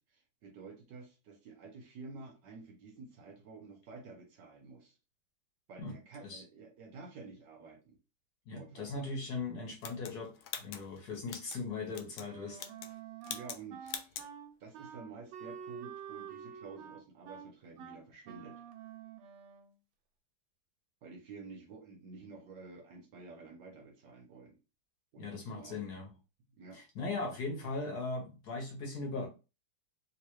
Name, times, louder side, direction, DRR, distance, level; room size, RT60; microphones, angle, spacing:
voice 1, 0.0-5.0 5.7-8.0 8.5-9.1 13.3-14.2 14.6-18.6 21.0-24.6 25.1-25.8 26.6-26.8, right 4 dB, 65° right, 2 dB, 1.2 m, -50 dB
voice 2, 8.5-12.6 25.2-26.1 26.7-29.3, left 3 dB, 60° left, 1 dB, 1.3 m, -39 dB
sound 1, 9.8-11.6 11.9-12.3 12.5-13.0 13.2-13.6 13.9-14.3, left 9 dB, 75° left, 1.3 m, -43 dB
Wind instrument woodwind instrument, 12.2-19.8, right 8 dB, 90° right, 1.5 m, -48 dB
3.4 x 2.9 x 3.1 m, 0.30 s
omnidirectional pair, 2.3 m